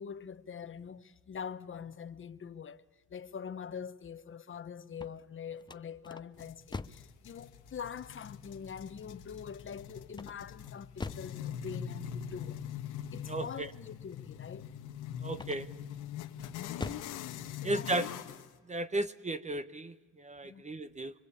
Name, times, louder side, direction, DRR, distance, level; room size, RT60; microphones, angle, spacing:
voice 1, 0.0-2.8 3.1-12.6 13.1-14.7 17.5-17.9 20.4-20.6, left 7 dB, 40° left, 1.1 m, -44 dB
sound 1, 4.8-7.2 10.1-11.4 15.3-15.9 16.4-17.2, left 3 dB, 15° left, 0.8 m, -43 dB
sound 2, 6.4-18.5, left 9 dB, 90° left, 1.6 m, -43 dB
voice 2, 13.3-13.7 15.2-15.7 17.6-18.1 18.7-21.1, right 2 dB, 25° right, 1.0 m, -35 dB
25.0 x 24.5 x 8.5 m
cardioid pair, 90°, 30 cm